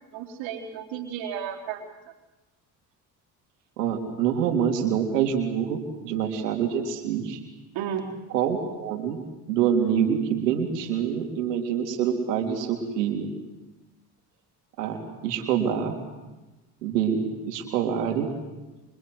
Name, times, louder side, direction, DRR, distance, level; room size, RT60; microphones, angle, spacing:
voice 1, 0.1-1.8 7.7-8.1, right 8 dB, 70° right, 2 dB, 4.0 m, -33 dB
voice 2, 3.8-7.4 8.3-9.2 9.5-13.3 14.8-16.0 16.8-18.3, right 8 dB, 85° right, 3 dB, 3.7 m, -26 dB
28.0 x 24.5 x 8.0 m, 1.1 s
hypercardioid pair, 60°, 47 cm